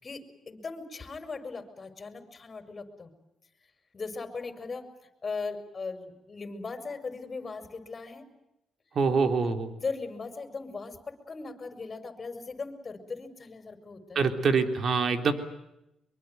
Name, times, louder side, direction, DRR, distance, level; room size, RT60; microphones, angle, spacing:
voice 1, 0.0-3.1 3.9-4.9 5.2-8.3 9.8-14.3, left 4 dB, 30° left, 8 dB, 5.5 m, -38 dB
voice 2, 9.0-9.7 14.2-15.3, right 5 dB, 55° right, 7 dB, 3.5 m, -25 dB
24.0 x 23.5 x 9.4 m, 0.87 s
cardioid pair, 90°, 0 cm